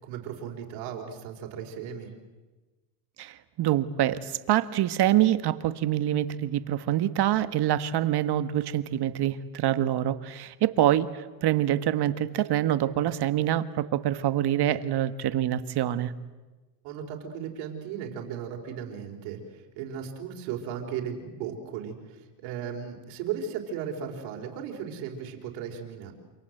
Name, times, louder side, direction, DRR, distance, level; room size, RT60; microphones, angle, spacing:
voice 1, 0.0-2.1 13.1-13.4 16.8-26.1, right 8 dB, 75° right, 2 dB, 4.5 m, -36 dB
voice 2, 3.2-16.1, right 12 dB, 50° right, 12 dB, 1.6 m, -25 dB
28.0 x 26.0 x 8.0 m, 1.2 s
supercardioid pair, 100°, 50 cm